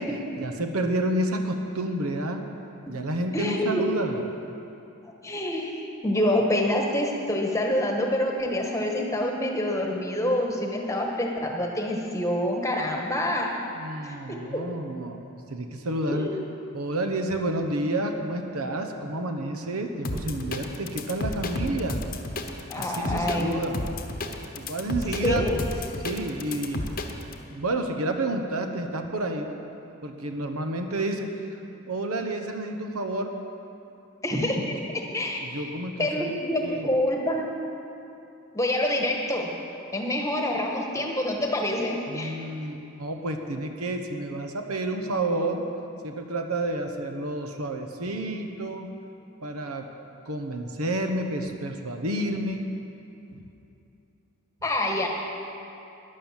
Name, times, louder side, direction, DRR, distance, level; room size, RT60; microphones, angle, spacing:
voice 1, 0.4-2.4 2.9-4.2 13.7-15.2 15.5-16.3 16.7-22.0 22.8-23.9 24.5-25.4 26.0-27.0 27.5-29.5 30.0-31.6 31.9-33.3 34.3-34.4 35.4-36.9 42.1-45.6 46.0-48.9 49.4-49.8 50.2-52.7 53.3-53.4, right 1 dB, 80° right, 5 dB, 1.1 m, -30 dB
voice 2, 3.3-3.8 5.0-13.5 14.0-14.2 14.5-14.6 16.1-16.3 22.7-23.6 25.2-25.6 34.2-34.7 35.1-35.6 36.0-37.5 38.5-39.5 39.9-42.4 54.6-55.1, left 1 dB, 15° left, 1 dB, 1.2 m, -26 dB
sound 1, 20.0-27.4, left 2 dB, 40° left, 0.9 m, -32 dB
12.0 x 10.5 x 7.4 m, 2.8 s
head